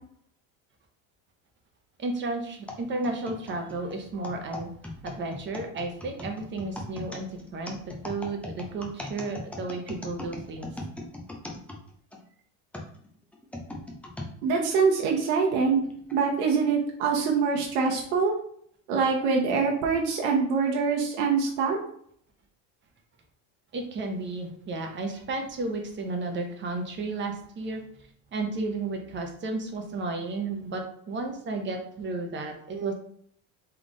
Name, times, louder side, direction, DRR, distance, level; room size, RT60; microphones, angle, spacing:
voice 1, 2.0-4.7 5.0-10.7 23.7-27.8 28.3-32.9, right 3 dB, 30° right, 3 dB, 0.8 m, -33 dB
sound 1, 2.7-12.2 12.7-14.3 15.0-15.1 15.9-16.2, left 2 dB, 5° left, 0.4 m, -39 dB
voice 2, 14.4-15.8 16.1-18.3 18.9-21.8, right 5 dB, 85° right, 0 dB, 1.0 m, -24 dB
3.6 x 3.3 x 3.8 m, 0.64 s
cardioid pair, 145°, 40 cm